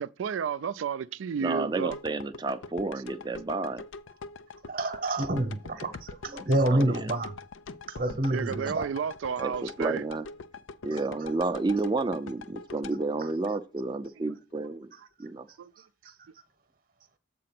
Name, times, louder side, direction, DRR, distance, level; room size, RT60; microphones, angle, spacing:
voice 1, 0.0-2.0 8.3-10.0 15.6-15.7, right 7 dB, 90° right, 0.4 m, -32 dB
voice 2, 1.4-3.8 6.6-7.1 9.4-9.5 9.8-10.3 10.8-14.9 15.2-15.5, right 3 dB, 20° right, 0.4 m, -30 dB
sound 1, 1.9-14.1 14.5-14.6, left 4 dB, 90° left, 0.5 m, -44 dB
voice 3, 4.6-7.3 7.9-8.9, right 1 dB, 45° right, 0.9 m, -28 dB
7.6 x 3.8 x 5.9 m
head